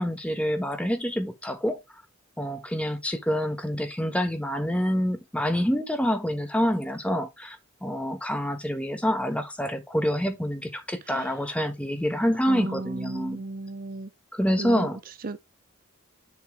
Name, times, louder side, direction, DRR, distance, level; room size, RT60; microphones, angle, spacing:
voice 1, 0.0-1.8 2.4-13.4 14.3-15.0, equal, 5° left, 1.2 m, -27 dB
voice 2, 12.5-14.1 14.6-14.9 15.2-15.4, right 2 dB, 40° right, 0.5 m, -35 dB
7.3 x 7.1 x 3.1 m
head